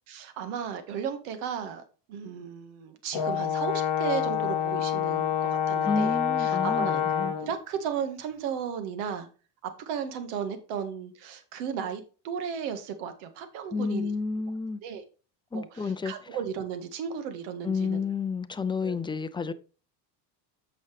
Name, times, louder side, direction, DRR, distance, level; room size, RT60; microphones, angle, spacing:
voice 1, 0.1-1.8 2.1-9.3 9.6-14.1 14.8-15.0 15.5-18.0 18.8-19.0, right 7 dB, 75° right, 1.8 m, -35 dB
Brass instrument, 3.1-7.5, left 8 dB, 50° left, 1.3 m, -27 dB
voice 2, 5.8-7.3 13.7-14.8 15.5-16.1 17.6-19.5, left 4 dB, 10° left, 0.5 m, -30 dB
8.4 x 6.2 x 3.4 m
supercardioid pair, 110°, 48 cm